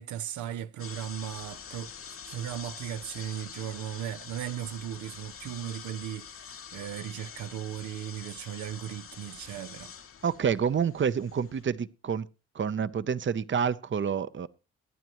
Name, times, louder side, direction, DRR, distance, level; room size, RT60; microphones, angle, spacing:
voice 1, 0.0-1.9 2.2-9.9, right 11 dB, 80° right, 0.6 m, -37 dB
sound 1, 0.8-11.6, left 7 dB, 50° left, 0.9 m, -46 dB
voice 2, 10.2-12.3 12.5-14.5, right 7 dB, 40° right, 0.7 m, -28 dB
22.0 x 9.2 x 3.0 m
supercardioid pair, 50°, 29 cm